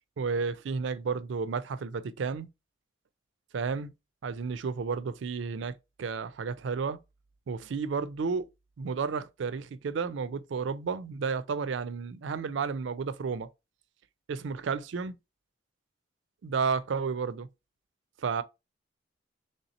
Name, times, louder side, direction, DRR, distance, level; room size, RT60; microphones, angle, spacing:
voice 1, 0.2-2.5 3.5-3.9 4.2-7.0 7.5-8.5 8.8-13.5 14.3-15.1 16.4-17.5 18.2-18.4, right 5 dB, 70° right, 0.4 m, -32 dB
3.2 x 2.8 x 3.9 m
head